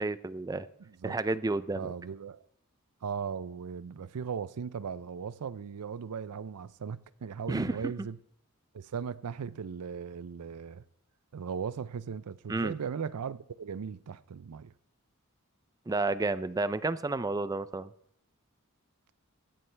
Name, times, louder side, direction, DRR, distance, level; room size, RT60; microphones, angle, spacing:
voice 1, 0.0-0.7 1.0-1.9 7.5-7.8 12.5-12.7 15.9-17.9, right 2 dB, 15° right, 0.4 m, -31 dB
voice 2, 0.8-1.2 1.8-2.4 3.0-8.2 8.7-10.8 11.3-14.7, right 6 dB, 90° right, 0.5 m, -38 dB
16.5 x 11.5 x 3.3 m
head